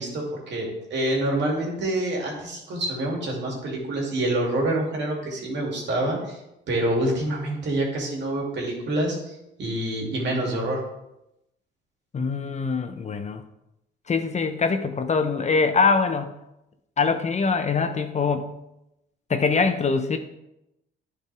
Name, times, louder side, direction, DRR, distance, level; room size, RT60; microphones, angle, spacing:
voice 1, 0.0-6.4 6.7-10.8, right 1 dB, 60° right, -1 dB, 2.8 m, -27 dB
voice 2, 12.1-13.4 14.1-16.3 17.0-18.5 19.3-20.2, left 4 dB, 35° left, 8 dB, 0.7 m, -23 dB
10.5 x 5.0 x 3.5 m, 0.87 s
supercardioid pair, 80°, 21 cm